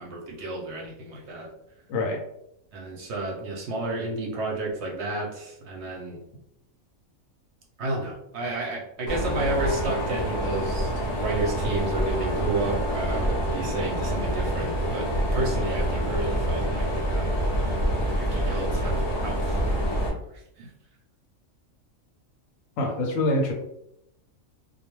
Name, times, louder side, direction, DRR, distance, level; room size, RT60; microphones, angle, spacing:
voice 1, 0.0-1.5 2.7-6.2 7.8-17.4 18.2-19.6 20.3-20.7, right 2 dB, 65° right, -1 dB, 0.8 m, -31 dB
Mechanisms, 9.1-20.1, equal, 45° left, 0.5 m, -26 dB
voice 2, 22.8-23.5, left 2 dB, 75° left, 0 dB, 1.0 m, -25 dB
2.4 x 2.2 x 2.9 m, 0.79 s
omnidirectional pair, 1.4 m